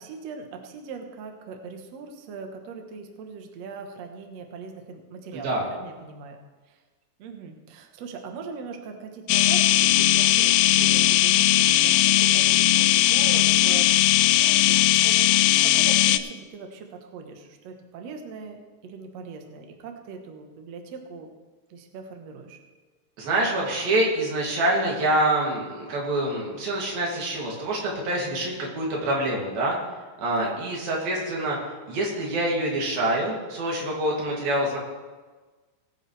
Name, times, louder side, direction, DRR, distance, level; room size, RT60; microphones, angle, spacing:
voice 1, 0.0-6.4 6.7-6.8 7.2-13.9 14.3-15.2 15.5-21.3 21.7-22.6 30.4-30.6, right 5 dB, 85° right, 3 dB, 1.4 m, -40 dB
voice 2, 5.3-5.7 23.2-29.8 30.2-31.6 31.9-34.8, right 1 dB, 60° right, -3 dB, 4.3 m, -26 dB
sound 1, 9.3-16.2, left 13 dB, 85° left, 2.2 m, -19 dB
19.5 x 9.7 x 3.3 m, 1.3 s
omnidirectional pair, 4.9 m